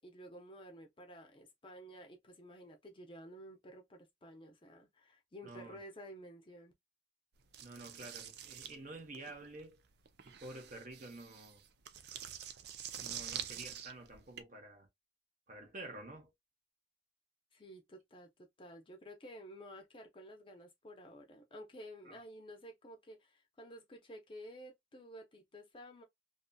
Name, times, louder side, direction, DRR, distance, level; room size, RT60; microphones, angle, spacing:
voice 1, 0.0-6.7 17.5-26.0, equal, 30° left, 0.6 m, -52 dB
voice 2, 5.4-5.8 7.6-9.8 10.2-11.6 13.0-14.9 15.5-16.3 22.0-22.2, right 2 dB, 45° right, 0.8 m, -49 dB
sound 1, 7.5-14.4, right 9 dB, 60° right, 0.4 m, -46 dB
2.6 x 2.6 x 2.2 m
head